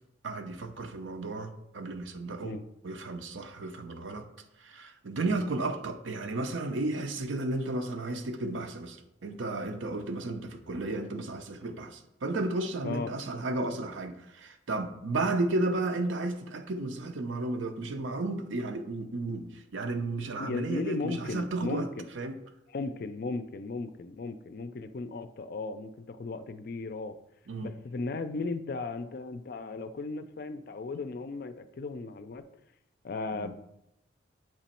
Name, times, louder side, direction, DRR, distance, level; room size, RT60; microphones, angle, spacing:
voice 1, 0.2-2.5 2.8-4.3 4.6-21.9 22.2-22.4 27.5-27.8 33.3-33.5, right 2 dB, 75° right, 0.6 m, -33 dB
voice 2, 20.4-22.1 22.7-27.1 27.6-32.4 33.0-33.5, left 3 dB, 50° left, 0.4 m, -36 dB
7.5 x 3.0 x 4.3 m
head